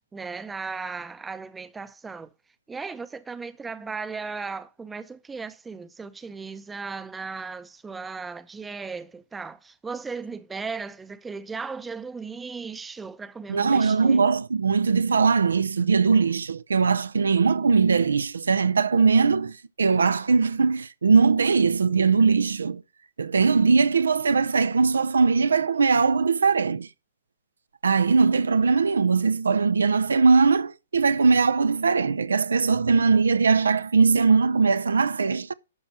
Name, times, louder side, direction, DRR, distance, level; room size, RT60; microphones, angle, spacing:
voice 1, 0.1-2.3 2.7-14.3, right 4 dB, 10° right, 0.7 m, -36 dB
voice 2, 13.5-22.8 23.2-26.9 27.8-35.5, right 4 dB, 80° right, 0.5 m, -20 dB
12.0 x 4.4 x 6.1 m
hypercardioid pair, 125°, 0 cm